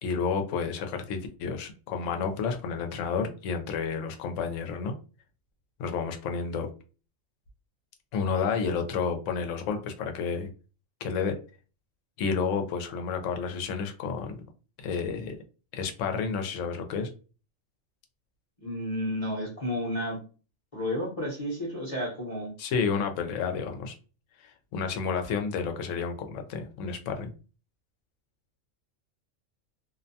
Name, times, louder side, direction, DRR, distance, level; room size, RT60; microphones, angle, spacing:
voice 1, 0.0-5.0 5.8-6.7 8.1-10.5 11.0-11.4 12.2-14.4 14.8-15.4 15.7-17.1 22.6-23.9 24.4-27.3, left 5 dB, 75° left, 5 dB, 0.9 m, -30 dB
voice 2, 18.6-20.2 20.7-22.5, equal, 30° left, -6 dB, 0.8 m, -31 dB
2.5 x 2.1 x 2.6 m, 0.34 s
omnidirectional pair, 1.4 m